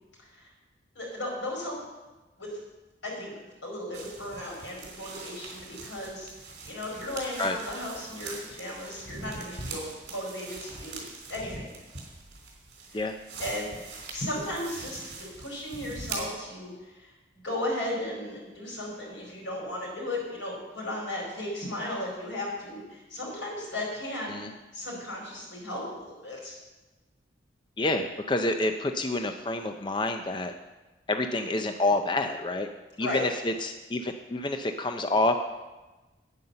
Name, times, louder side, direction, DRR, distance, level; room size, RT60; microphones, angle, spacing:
voice 1, 0.2-0.5 0.9-1.7 2.4-2.5 3.0-11.7 12.9-13.1 13.4-13.7 14.1-17.1 17.4-24.5 24.7-26.5 33.0-33.2, left 1 dB, 85° left, -2 dB, 5.0 m, -35 dB
sound 1, 3.9-16.2, right 3 dB, 60° right, 3.2 m, -42 dB
voice 2, 27.8-30.5 31.1-32.7 33.0-35.3, left 2 dB, 25° left, 6 dB, 0.5 m, -28 dB
9.6 x 9.0 x 6.8 m, 1.1 s
head